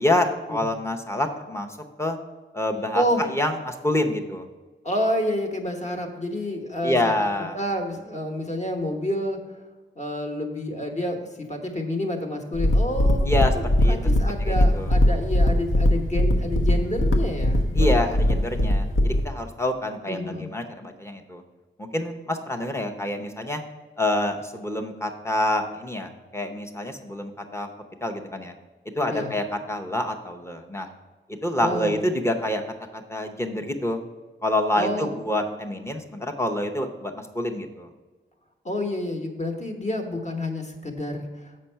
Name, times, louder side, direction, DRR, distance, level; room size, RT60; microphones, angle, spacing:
voice 1, 0.0-1.7 2.0-2.2 2.5-4.5 6.8-7.6 13.2-13.5 13.8-14.0 14.4-14.9 17.7-21.4 21.8-23.6 24.0-27.7 28.0-28.5 29.0-30.9 31.4-32.6 32.9-34.0 34.4-37.9, left 1 dB, 15° left, 4 dB, 0.7 m, -27 dB
voice 2, 4.8-7.1 7.5-9.6 10.0-11.2 11.5-13.2 13.5-18.4 20.1-20.5 29.1-29.3 31.6-32.0 34.8-35.1 38.6-41.5, left 1 dB, 35° left, 3 dB, 1.1 m, -29 dB
sound 1, 12.5-19.2, left 1 dB, 80° left, 1.0 m, -20 dB
7.5 x 5.4 x 5.6 m, 1.2 s
wide cardioid pair, 145°, 21 cm